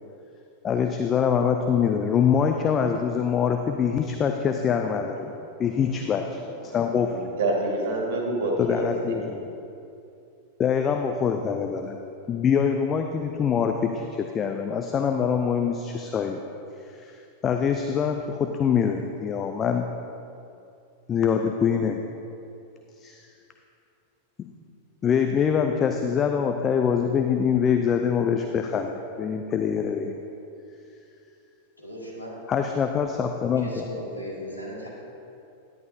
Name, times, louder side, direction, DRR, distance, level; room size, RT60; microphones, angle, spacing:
voice 1, 0.6-5.3 5.6-7.2 8.6-9.5 10.6-12.0 12.3-16.4 17.0-17.2 17.4-19.9 21.1-22.0 23.0-23.2 25.0-30.1 32.5-33.8, left 7 dB, 25° left, 4 dB, 0.5 m, -24 dB
voice 2, 7.0-9.2, right 2 dB, 55° right, -1 dB, 1.9 m, -27 dB
voice 3, 31.8-32.3 33.6-34.9, equal, 85° left, -5 dB, 2.2 m, -37 dB
11.0 x 11.0 x 2.8 m, 2.6 s
figure-of-eight pair, 90°, 0 cm